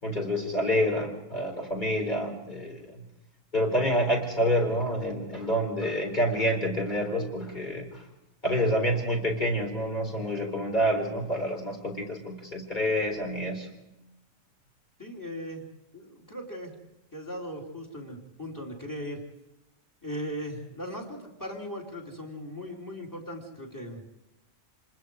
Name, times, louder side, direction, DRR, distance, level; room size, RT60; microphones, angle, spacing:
voice 1, 0.0-3.1 3.5-8.0 8.4-13.7, equal, 35° left, 2 dB, 4.0 m, -28 dB
voice 2, 15.0-15.6 15.9-16.7 17.1-19.2 20.0-24.0, equal, 15° left, 1 dB, 3.7 m, -38 dB
27.5 x 20.5 x 4.9 m, 0.92 s
omnidirectional pair, 1.3 m